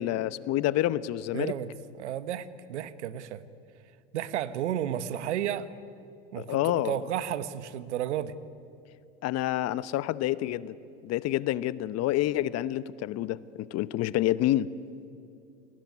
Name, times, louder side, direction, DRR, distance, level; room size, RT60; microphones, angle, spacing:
voice 1, 0.0-1.5 6.4-7.0 9.2-10.7 11.0-14.7, left 14 dB, 45° left, 17 dB, 1.0 m, -28 dB
voice 2, 1.3-1.7 2.0-3.4 4.1-5.7 6.3-8.3, right 11 dB, 80° right, 14 dB, 1.4 m, -32 dB
29.5 x 20.0 x 9.6 m, 2.6 s
hypercardioid pair, 90°, 34 cm